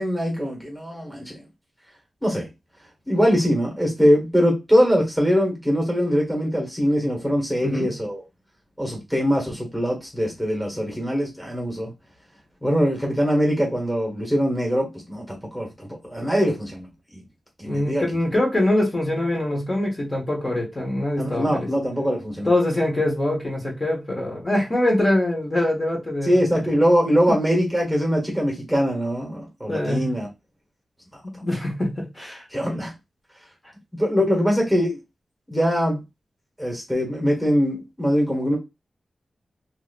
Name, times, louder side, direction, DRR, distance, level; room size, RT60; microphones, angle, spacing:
voice 1, 0.0-1.4 2.2-2.5 3.1-8.2 8.8-11.9 12.6-17.2 17.6-18.0 21.2-22.5 26.2-30.3 32.5-32.9 33.9-35.0 35.5-36.0 36.6-38.6, equal, ahead, 1.2 m, -22 dB
voice 2, 7.6-7.9 17.7-21.7 22.4-26.4 29.7-30.1 31.2-32.4 34.2-34.3, left 1 dB, 30° left, 1.3 m, -24 dB
3.0 x 2.9 x 2.5 m
wide cardioid pair, 110°, 0 cm